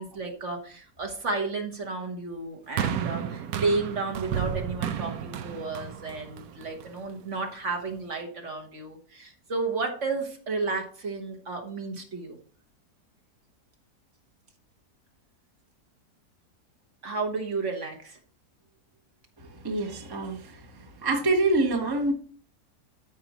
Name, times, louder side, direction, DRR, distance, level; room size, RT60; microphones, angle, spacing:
voice 1, 0.0-12.4 17.0-18.2, right 3 dB, 45° right, 3 dB, 1.6 m, -32 dB
sound 1, 2.8-7.1 7.9-8.0, right 9 dB, 70° right, 1.1 m, -32 dB
voice 2, 19.4-20.6 21.0-22.1, right 2 dB, 15° right, 3 dB, 0.9 m, -26 dB
12.5 x 5.5 x 3.0 m, 0.43 s
omnidirectional pair, 1.8 m